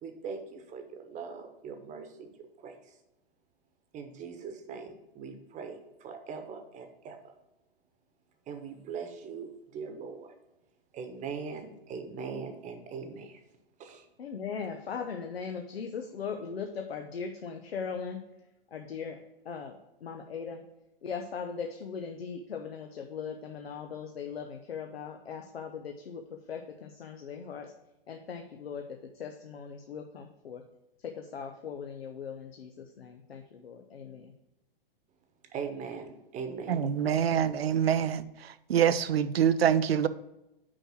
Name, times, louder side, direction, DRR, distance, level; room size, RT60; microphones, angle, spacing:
voice 1, 0.0-2.3 2.6-2.8 3.9-7.2 8.5-10.3 10.9-13.4 13.8-14.1 35.5-36.8, right 5 dB, 25° right, 6 dB, 1.1 m, -41 dB
voice 2, 14.2-18.2 18.7-19.2 19.4-20.6 21.0-27.7 28.1-30.6 31.0-34.3, left 6 dB, 85° left, 4 dB, 0.8 m, -39 dB
voice 3, 36.7-38.2 38.7-40.1, right 8 dB, 80° right, 14 dB, 0.6 m, -25 dB
6.3 x 4.8 x 6.1 m, 0.94 s
hypercardioid pair, 115°, 30 cm